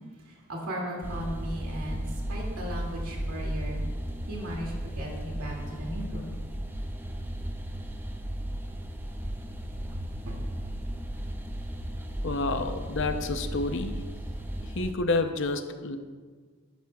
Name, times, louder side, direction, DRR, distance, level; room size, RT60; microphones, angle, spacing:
voice 1, 0.2-3.8 4.3-6.4 10.3-10.4, equal, 90° right, -2 dB, 2.4 m, -37 dB
sound 1, 1.0-14.9, equal, 10° right, 0.4 m, -35 dB
voice 2, 12.2-14.0 14.7-16.0, left 3 dB, 55° left, 8 dB, 0.7 m, -29 dB
12.5 x 10.5 x 2.3 m, 1.5 s
head